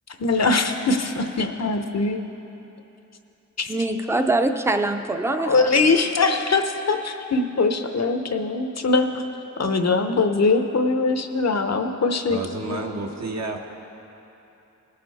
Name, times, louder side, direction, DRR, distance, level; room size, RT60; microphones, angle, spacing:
voice 1, 0.2-2.2 3.6-3.7 5.4-9.2 9.6-12.4 12.7-12.8, left 3 dB, 60° left, 7 dB, 0.7 m, -22 dB
voice 2, 3.7-5.7, right 2 dB, 10° right, 7 dB, 0.5 m, -23 dB
voice 3, 12.3-13.6, right 2 dB, 65° right, 2 dB, 1.1 m, -30 dB
19.0 x 6.7 x 4.1 m, 2.9 s
wide cardioid pair, 85°, 29 cm